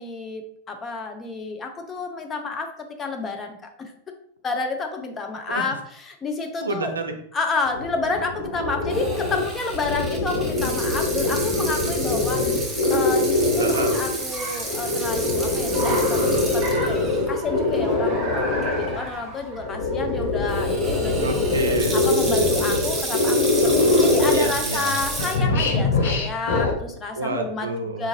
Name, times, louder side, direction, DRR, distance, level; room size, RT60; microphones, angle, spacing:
voice 1, 0.0-2.7 3.0-3.9 4.4-6.9 7.3-13.5 13.9-21.3 21.9-27.7 28.0-28.1, left 3 dB, 20° left, 4 dB, 0.6 m, -30 dB
voice 2, 6.6-7.2 13.6-13.9 21.2-22.1 24.3-25.0 25.4-25.6 27.1-28.1, right 2 dB, 75° right, 5 dB, 0.4 m, -29 dB
sound 1, 7.7-14.2 14.6-19.0 19.6-24.7 25.0-26.7, left 2 dB, 55° left, 0.7 m, -23 dB
Water tap faucet / Sink (filling or washing), 8.9-17.3 17.8-17.9 18.6-18.9 20.5-25.4, right 2 dB, 15° right, 0.8 m, -32 dB
Car, 11.0-23.0, right 1 dB, 30° right, 1.3 m, -37 dB
3.7 x 2.5 x 2.9 m, 0.65 s
figure-of-eight pair, 90°, 0 cm